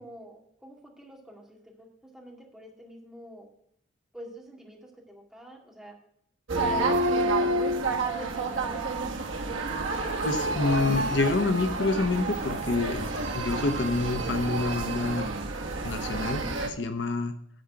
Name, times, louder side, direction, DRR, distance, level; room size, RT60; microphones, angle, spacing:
voice 1, 0.0-1.9 2.1-3.5 4.1-6.0 6.5-8.7, equal, 5° right, -1 dB, 2.1 m, -46 dB
sound 1, 6.5-16.7, right 2 dB, 85° right, 1.3 m, -29 dB
voice 2, 10.2-13.0 13.3-15.3 15.8-17.3, left 3 dB, 65° left, 7 dB, 0.8 m, -27 dB
10.5 x 4.7 x 7.6 m, 0.70 s
head